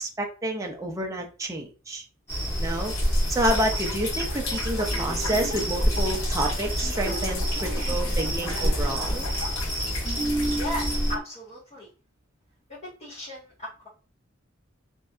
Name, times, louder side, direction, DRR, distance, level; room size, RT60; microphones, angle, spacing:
voice 1, 0.0-2.0 2.6-2.9 3.3-9.3, right 1 dB, 15° right, 1 dB, 0.6 m, -29 dB
sound 1, 2.3-11.1, equal, 10° left, 1.4 m, -28 dB
sound 2, 2.8-11.0, left 4 dB, 90° left, 0.7 m, -37 dB
sound 3, 4.9-11.2, right 2 dB, 60° right, 0.9 m, -35 dB
voice 2, 10.6-11.9 12.7-13.9, equal, 30° left, -9 dB, 1.2 m, -36 dB
3.2 x 2.7 x 2.4 m, 0.34 s
head